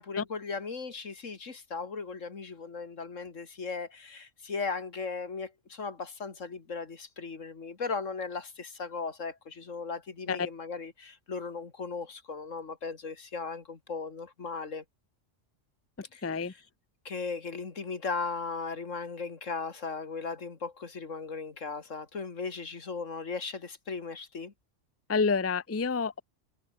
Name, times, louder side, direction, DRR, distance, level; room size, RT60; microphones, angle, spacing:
voice 1, 0.0-14.8 16.1-16.2 17.0-24.5, left 4 dB, 80° left, 2.6 m, -37 dB
voice 2, 16.0-16.5 25.1-26.2, left 5 dB, 15° left, 0.5 m, -29 dB
omnidirectional pair, 1.3 m